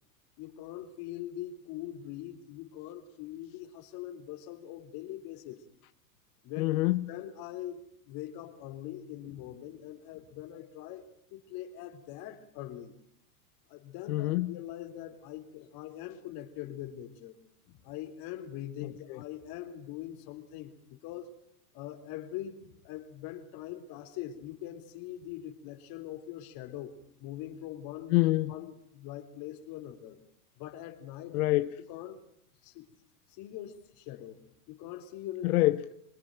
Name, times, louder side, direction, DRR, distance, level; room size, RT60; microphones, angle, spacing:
voice 1, 0.4-5.6 6.4-6.6 7.1-7.8 8.1-11.0 11.3-12.9 13.7-17.3 17.7-21.3 21.7-28.2 28.5-30.2 30.6-31.4 31.9-32.2 32.6-32.9 33.3-34.4 34.7-35.5, left 12 dB, 50° left, 4.0 m, -42 dB
voice 2, 6.6-7.1 14.1-14.6 19.1-19.2 28.1-28.5 31.3-31.7 35.4-35.8, left 18 dB, 65° left, 1.2 m, -26 dB
24.5 x 20.5 x 9.3 m
supercardioid pair, 125°, 46 cm